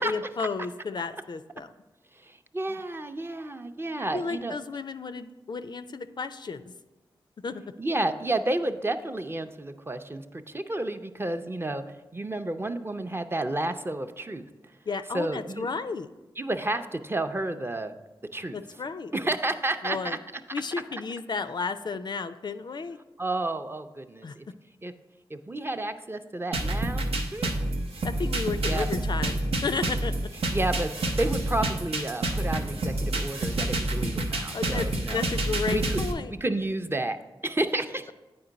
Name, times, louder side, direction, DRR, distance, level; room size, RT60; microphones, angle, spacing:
voice 1, 0.0-1.7 2.7-2.8 4.1-6.7 7.4-7.6 14.9-16.1 18.5-19.1 19.8-20.2 20.5-23.0 24.2-24.3 28.0-30.3 34.5-36.3, left 4 dB, 50° left, 11 dB, 0.3 m, -33 dB
voice 2, 2.2-4.6 7.8-11.8 12.1-14.4 15.1-15.7 16.4-17.9 18.3-18.6 19.1-20.4 23.2-24.5 24.8-24.9 25.3-27.5 28.6-28.9 30.5-35.2 35.7-37.2 37.4-38.1, right 2 dB, 25° right, 8 dB, 0.5 m, -31 dB
sound 1, 26.5-36.1, right 2 dB, 85° right, 0.7 m, -28 dB
8.6 x 4.5 x 3.9 m, 1.1 s
cardioid pair, 45°, 10 cm